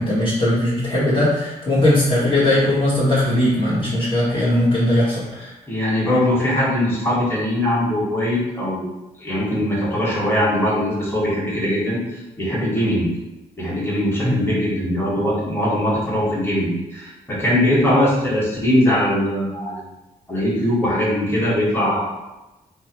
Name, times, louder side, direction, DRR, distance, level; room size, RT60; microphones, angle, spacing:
voice 1, 0.0-5.5 14.2-14.4, left 1 dB, 30° left, -11 dB, 1.2 m, -19 dB
voice 2, 5.7-8.9 9.2-13.1 13.6-19.9 20.3-22.1, left 1 dB, 15° left, -7 dB, 1.5 m, -21 dB
2.9 x 2.1 x 3.0 m, 1.0 s
supercardioid pair, 45°, 18 cm